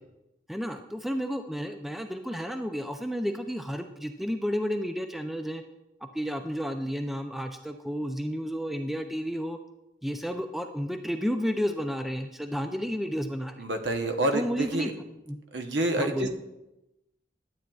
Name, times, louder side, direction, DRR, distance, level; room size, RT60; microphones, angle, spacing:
voice 1, 0.5-5.6 6.0-9.6 10.0-13.5 14.3-14.9 15.3-15.4 16.0-16.3, equal, ahead, 6 dB, 0.3 m, -31 dB
voice 2, 13.6-14.9 15.5-16.3, right 1 dB, 70° right, 5 dB, 0.9 m, -28 dB
11.5 x 8.7 x 2.3 m, 0.96 s
head